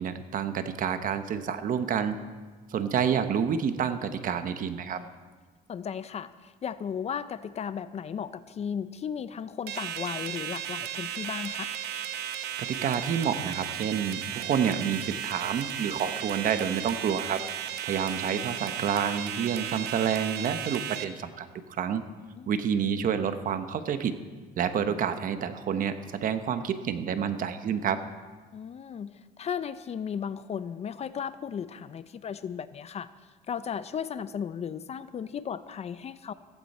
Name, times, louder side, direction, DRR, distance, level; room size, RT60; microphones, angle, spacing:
voice 1, 0.0-2.2 2.7-5.0 12.6-17.5 17.8-22.0 22.5-24.2 24.6-28.0, right 7 dB, 55° right, 10 dB, 1.1 m, -29 dB
voice 2, 5.7-11.7 22.4-22.5 28.5-33.1 33.5-36.3, left 7 dB, 40° left, 14 dB, 0.6 m, -35 dB
sound 1, 9.7-21.0, right 10 dB, 75° right, 0.9 m, -35 dB
15.5 x 14.5 x 4.3 m, 1.4 s
cardioid pair, 110°, 17 cm